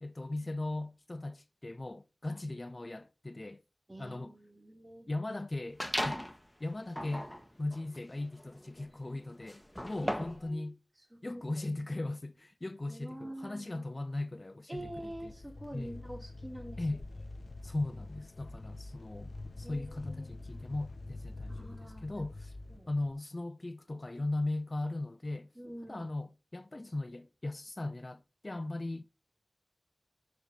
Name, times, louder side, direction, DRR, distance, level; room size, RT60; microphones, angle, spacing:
voice 1, 0.0-3.6 4.0-4.4 5.1-6.2 6.6-7.3 7.6-10.8 11.2-15.3 15.7-16.0 16.8-17.0 17.6-22.6 22.9-25.5 25.9-29.0, left 2 dB, 40° left, 0.4 m, -38 dB
voice 2, 3.9-5.1 10.0-10.7 11.1-11.2 12.9-13.9 14.7-16.8 19.6-20.3 21.5-22.2 22.7-22.9 25.6-26.1 28.9-29.0, right 1 dB, 25° right, 3.6 m, -46 dB
sound 1, 5.8-6.4 6.9-10.5, equal, 10° left, 1.0 m, -37 dB
sound 2, 14.8-23.1, left 2 dB, 70° left, 0.7 m, -46 dB
7.1 x 4.5 x 6.5 m
wide cardioid pair, 45°, 0 cm